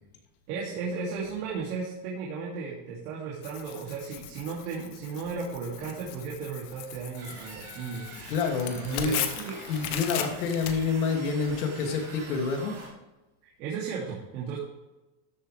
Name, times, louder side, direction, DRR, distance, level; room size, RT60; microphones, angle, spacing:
voice 1, 0.5-8.1 8.7-9.6 13.4-14.6, right 5 dB, 80° right, -4 dB, 2.9 m, -35 dB
Tearing, 3.4-11.6, left 10 dB, 40° left, 1.0 m, -38 dB
sound 1, 7.2-12.9, right 3 dB, 30° right, 3.0 m, -45 dB
voice 2, 8.1-9.2 9.7-12.8, left 4 dB, 70° left, 2 dB, 2.8 m, -28 dB
13.5 x 7.7 x 3.4 m, 1.1 s
supercardioid pair, 175°, 46 cm